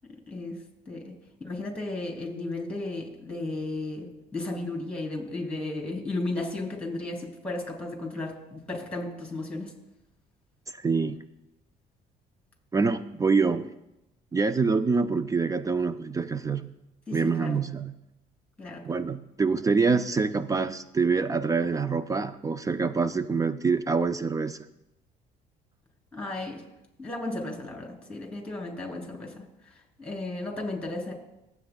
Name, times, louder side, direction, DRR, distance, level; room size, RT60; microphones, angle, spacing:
voice 1, 1.4-9.7 17.1-17.6 18.6-18.8 26.1-26.6 27.0-29.3 30.0-31.1, left 2 dB, 5° left, 1 dB, 3.2 m, -34 dB
voice 2, 10.7-11.2 12.7-13.7 14.3-16.7 17.1-18.0 18.9-24.6, right 4 dB, 20° right, 12 dB, 0.4 m, -26 dB
22.5 x 8.0 x 2.3 m, 0.90 s
cardioid pair, 110°, 17 cm